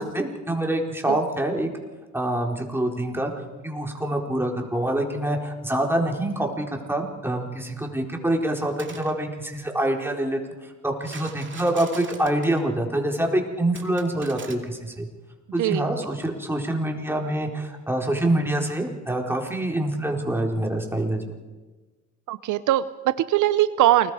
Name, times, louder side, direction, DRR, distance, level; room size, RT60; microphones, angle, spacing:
voice 1, 0.0-1.7 2.1-3.3 3.6-15.1 15.5-21.3, right 1 dB, 10° right, 1 dB, 4.1 m, -26 dB
sound 1, 8.6-9.1 11.0-12.6 13.8-14.6, right 5 dB, 40° right, 2.5 m, -41 dB
voice 2, 22.3-24.1, right 14 dB, 80° right, 14 dB, 0.7 m, -21 dB
29.0 x 20.5 x 5.0 m, 1.3 s
cardioid pair, 90°, 30 cm